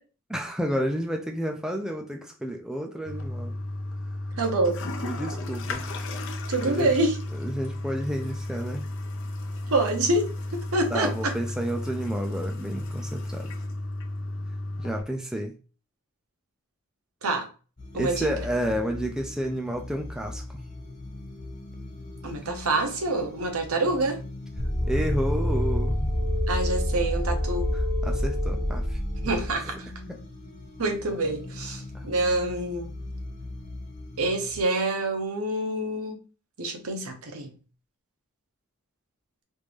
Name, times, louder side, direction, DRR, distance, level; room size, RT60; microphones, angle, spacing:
voice 1, 0.3-3.5 5.0-5.8 6.6-6.9 7.4-8.9 10.9-13.5 14.8-15.5 17.9-20.4 24.9-26.1 28.0-29.0 29.6-29.7 30.1-30.2 31.9-32.0, equal, 5° right, 2 dB, 0.4 m, -30 dB
Toilet flush, 3.0-15.0, left 1 dB, 60° left, 0.6 m, -33 dB
voice 2, 4.4-4.8 6.5-7.2 9.7-10.3 10.7-11.3 17.2-17.5 17.9-18.3 22.2-24.2 26.5-27.7 29.2-29.9 30.8-32.9 34.2-36.2 36.6-37.6, right 2 dB, 75° right, 4 dB, 0.9 m, -26 dB
sound 1, 17.8-34.6, left 2 dB, 35° left, 1.3 m, -40 dB
sound 2, 24.6-29.5, left 1 dB, 15° left, 0.8 m, -27 dB
3.3 x 2.6 x 3.4 m, 0.36 s
head